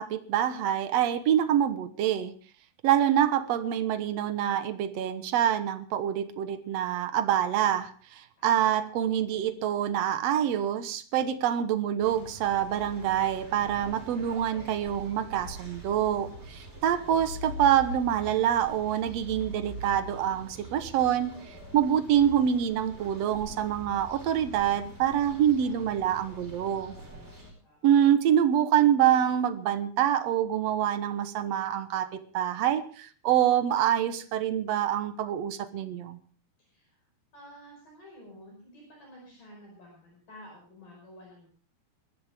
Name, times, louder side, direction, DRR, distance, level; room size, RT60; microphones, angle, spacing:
voice 1, 0.0-2.3 2.8-21.4 21.7-26.9 27.8-36.2, right 10 dB, 70° right, 10 dB, 1.6 m, -26 dB
sound 1, 12.0-27.5, equal, 15° right, 5.2 m, -44 dB
voice 2, 27.6-28.1 36.6-37.0 37.3-41.5, equal, 55° left, 0 dB, 6.6 m, -51 dB
21.0 x 14.5 x 3.5 m, 0.41 s
omnidirectional pair, 4.4 m